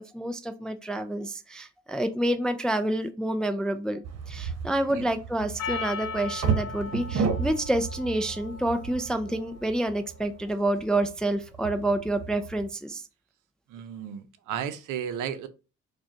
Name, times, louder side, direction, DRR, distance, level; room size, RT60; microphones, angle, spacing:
voice 1, 0.0-13.0, right 1 dB, 5° left, 0.3 m, -28 dB
sound 1, 4.0-12.7, right 5 dB, 60° right, 1.0 m, -33 dB
Percussion, 5.6-10.1, left 4 dB, 60° left, 0.9 m, -38 dB
voice 2, 13.7-15.5, right 9 dB, 90° right, 0.6 m, -34 dB
4.7 x 2.3 x 2.8 m
cardioid pair, 90°, 30 cm